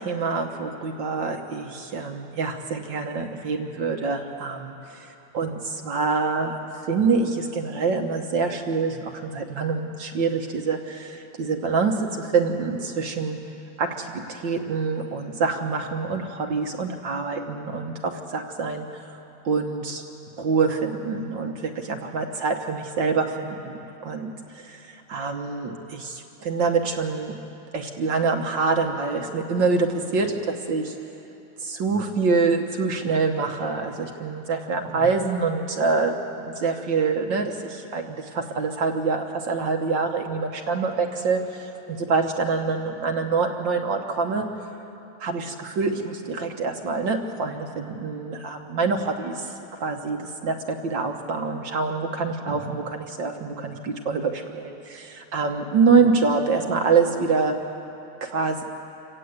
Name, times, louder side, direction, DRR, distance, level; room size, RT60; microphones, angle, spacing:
voice 1, 0.0-6.6 6.9-13.4 13.8-19.0 19.5-20.0 20.4-27.4 27.7-31.0 31.6-44.5 45.2-49.5 49.8-57.6 58.2-58.6, right 4 dB, 60° right, 3 dB, 1.8 m, -25 dB
27.5 x 17.5 x 8.1 m, 3.0 s
omnidirectional pair, 2.4 m